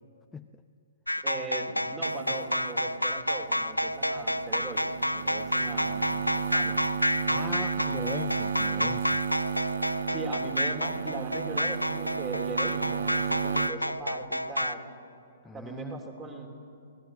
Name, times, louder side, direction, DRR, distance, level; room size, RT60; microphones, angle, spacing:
sound 1, 1.1-14.7, left 1 dB, 90° left, 0.6 m, -29 dB
voice 1, 1.2-6.8 10.1-14.8 15.5-16.5, right 3 dB, 20° right, 4 dB, 3.3 m, -39 dB
sound 2, 2.0-13.7, right 7 dB, 60° right, 1.0 m, -34 dB
voice 2, 7.3-9.2 15.4-16.0, left 4 dB, 10° left, 7 dB, 0.6 m, -40 dB
27.5 x 19.5 x 7.8 m, 2.5 s
figure-of-eight pair, 120°, 0 cm